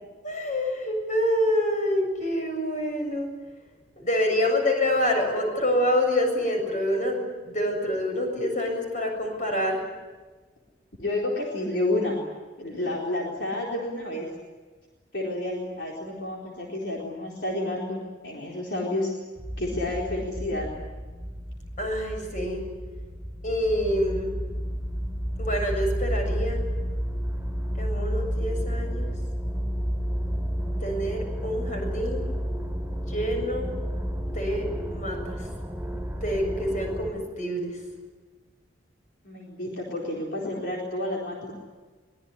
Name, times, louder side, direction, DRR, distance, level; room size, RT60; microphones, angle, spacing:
voice 1, 0.2-3.3 4.0-9.8 21.8-22.7 23.4-24.3 25.4-26.6 27.8-29.1 30.8-32.2 33.1-33.7 34.3-35.4 36.2-37.7, left 1 dB, 45° left, 3 dB, 7.4 m, -27 dB
voice 2, 11.0-12.2 12.6-14.3 15.1-19.1 19.6-20.7 39.2-41.5, left 1 dB, 65° left, -3 dB, 4.2 m, -30 dB
sound 1, 19.4-37.1, equal, 10° right, 4.0 m, -31 dB
23.5 x 20.5 x 9.9 m, 1.4 s
head